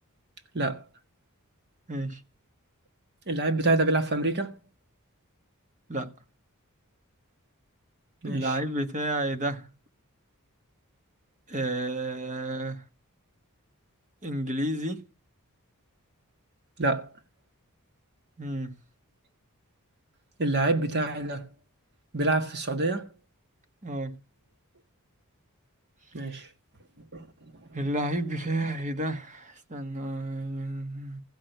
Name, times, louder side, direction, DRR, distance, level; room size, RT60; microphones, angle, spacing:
voice 1, 0.5-0.9 3.3-4.6 8.2-8.5 16.8-17.1 20.4-21.5 22.1-23.1 26.1-26.5 27.1-27.3, right 2 dB, 50° right, 1.6 m, -26 dB
voice 2, 1.9-2.2 5.9-6.1 8.2-9.7 11.5-12.8 14.2-15.0 18.4-18.7 23.8-24.2 27.7-31.2, right 1 dB, 35° right, 1.4 m, -31 dB
15.0 x 6.3 x 9.1 m
head